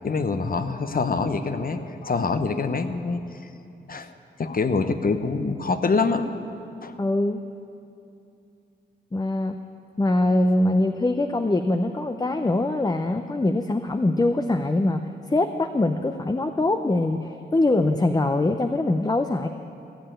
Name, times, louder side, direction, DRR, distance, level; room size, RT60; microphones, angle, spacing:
voice 1, 0.0-3.2 3.9-4.1 4.4-6.2 6.8-7.0, left 4 dB, 50° left, 9 dB, 0.9 m, -25 dB
voice 2, 7.0-7.4 9.1-9.6 10.0-15.0 15.3-19.5, left 2 dB, 20° left, 7 dB, 0.6 m, -23 dB
15.5 x 6.6 x 9.0 m, 2.6 s
cardioid pair, 55°, 19 cm